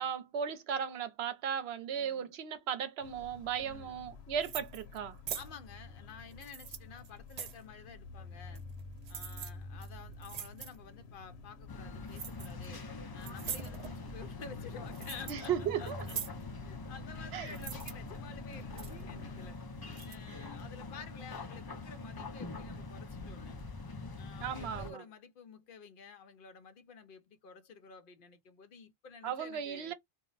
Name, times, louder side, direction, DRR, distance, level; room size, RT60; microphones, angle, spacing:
voice 1, 0.0-5.2 15.3-16.0 17.3-17.5 19.1-19.2 20.3-20.4 24.4-25.0 29.2-29.9, right 8 dB, 80° right, 0.8 m, -36 dB
voice 2, 1.9-2.3 3.6-4.1 5.3-8.6 9.1-12.8 13.1-19.6 20.0-23.6 24.2-29.9, left 5 dB, 60° left, 0.7 m, -51 dB
sound 1, 3.0-19.5, left 3 dB, 85° left, 0.9 m, -50 dB
sound 2, 4.4-5.0 5.3-5.5 6.3-7.6 8.5-8.8 9.1-9.5 9.8-9.9 10.2-10.8 12.1-12.7 13.2-13.9 14.6-15.5 15.8-16.4 17.5-17.9 18.5-19.0 19.9-20.2, right 8 dB, 55° right, 0.5 m, -42 dB
sound 3, 11.7-24.9, left 3 dB, 40° left, 0.3 m, -44 dB
2.2 x 2.0 x 3.7 m
omnidirectional pair, 1.1 m